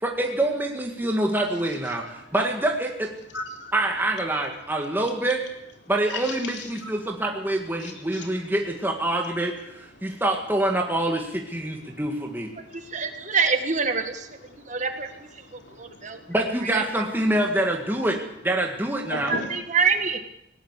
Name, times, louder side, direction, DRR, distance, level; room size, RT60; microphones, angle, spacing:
voice 1, 0.0-2.0 2.3-3.1 3.7-5.4 5.9-9.7 10.0-12.5 16.3-18.2 18.4-19.4, right 1 dB, 10° right, 1 dB, 2.0 m, -25 dB
voice 2, 1.9-2.3 3.3-3.7 6.1-6.9 7.8-8.3 10.0-10.2 11.8-12.0 12.6-13.4 14.5-14.9 15.4-16.4 18.9-19.7, left 2 dB, 65° left, 3 dB, 3.7 m, -38 dB
voice 3, 12.9-14.3 14.7-15.1 15.8-16.2 16.7-16.8 19.3-20.2, right 5 dB, 40° right, 7 dB, 1.8 m, -25 dB
18.5 x 18.5 x 8.2 m, 0.79 s
head